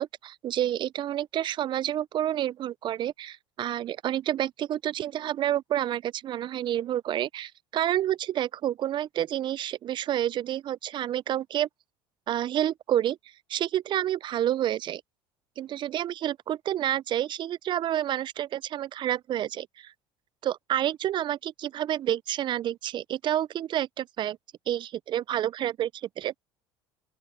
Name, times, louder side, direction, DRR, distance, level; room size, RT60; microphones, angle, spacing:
voice 1, 0.0-11.7 12.3-13.2 13.5-15.0 15.6-19.9 20.4-24.4 24.7-26.3, right 11 dB, 45° right, 0.5 m, -29 dB
open air
hypercardioid pair, 80°, 11 cm